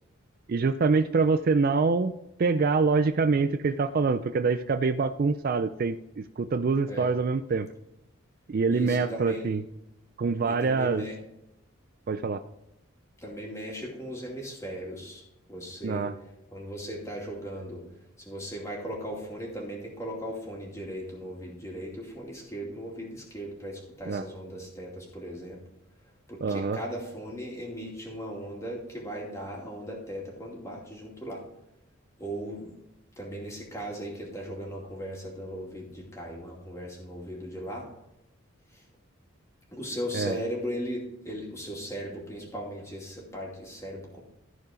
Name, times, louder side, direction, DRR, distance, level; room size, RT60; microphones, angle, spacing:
voice 1, 0.5-2.1 2.4-7.7 8.5-9.6 10.2-11.0 12.1-12.4 15.8-16.1 24.1-24.2 26.4-26.8 40.1-40.3, right 4 dB, 45° right, 10 dB, 0.3 m, -25 dB
voice 2, 8.7-9.5 10.4-11.2 13.2-15.2 15.5-16.1 16.5-17.8 18.2-25.6 26.3-31.4 32.2-32.7 33.2-37.9 38.7-38.8 39.7-44.2, equal, 15° left, -2 dB, 2.4 m, -37 dB
14.0 x 4.7 x 5.1 m, 0.85 s
head